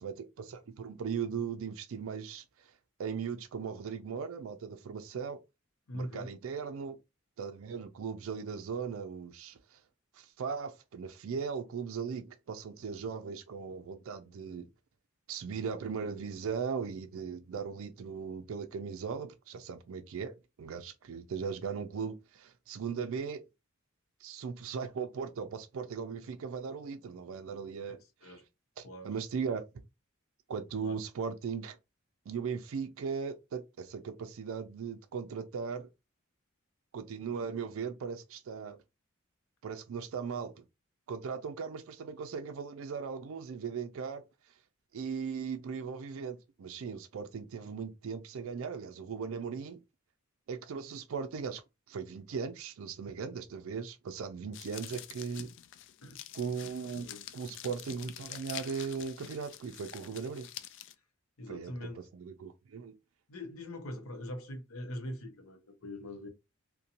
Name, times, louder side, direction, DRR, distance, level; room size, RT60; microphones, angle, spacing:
voice 1, 0.0-2.7 3.0-5.4 5.9-7.0 7.4-9.8 10.1-14.7 15.3-23.4 24.2-28.4 28.8-29.6 30.5-31.8 32.3-35.9 36.9-38.8 39.6-40.5 41.1-44.2 44.9-49.8 50.5-51.6 51.9-55.5 56.3-57.1 57.3-60.5 61.5-62.9, right 6 dB, 70° right, 0.4 m, -38 dB
voice 2, 5.9-6.3 27.9-28.4 28.8-29.1 30.8-31.0 56.0-56.2 57.0-57.3 61.4-62.1 63.3-66.3, left 1 dB, 85° left, 0.7 m, -42 dB
sound 1, 54.5-60.9, left 12 dB, 60° left, 0.3 m, -47 dB
2.7 x 2.2 x 2.5 m
head